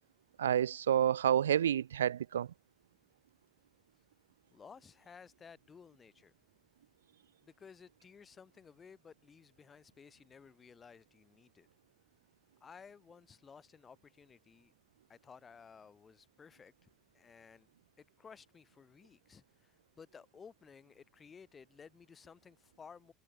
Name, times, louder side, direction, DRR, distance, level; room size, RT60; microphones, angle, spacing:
voice 1, 0.4-2.5, right 10 dB, 80° right, 0.3 m, -29 dB
voice 2, 4.5-6.3 7.4-11.7 12.6-14.7 15.1-17.7 18.0-23.1, left 6 dB, 30° left, 6.6 m, -56 dB
hypercardioid pair, 70°, 0 cm